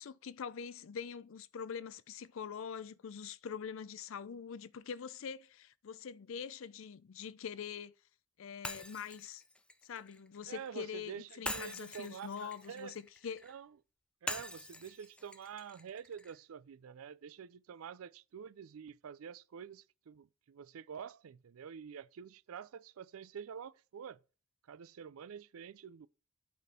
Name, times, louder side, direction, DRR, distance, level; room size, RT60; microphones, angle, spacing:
voice 1, 0.0-7.9 8.4-9.4 9.8-13.4, left 7 dB, 70° left, 0.4 m, -44 dB
Shatter, 8.6-10.7 11.4-13.5 14.3-16.4, left 1 dB, 5° left, 0.3 m, -44 dB
voice 2, 10.5-13.0 13.4-13.7 14.2-24.2 24.7-26.1, right 7 dB, 80° right, 0.4 m, -48 dB
8.3 x 4.2 x 4.2 m
head